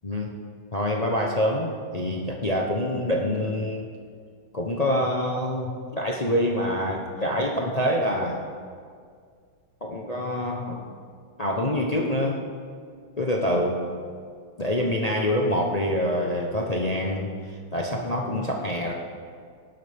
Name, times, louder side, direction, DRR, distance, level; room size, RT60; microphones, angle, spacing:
voice 1, 0.7-3.9 4.5-8.4 9.8-10.8 11.4-12.4 13.2-13.9 14.6-17.3 17.7-18.9, left 1 dB, 45° left, 0 dB, 0.5 m, -26 dB
18.5 x 11.0 x 3.5 m, 2.1 s
omnidirectional pair, 2.2 m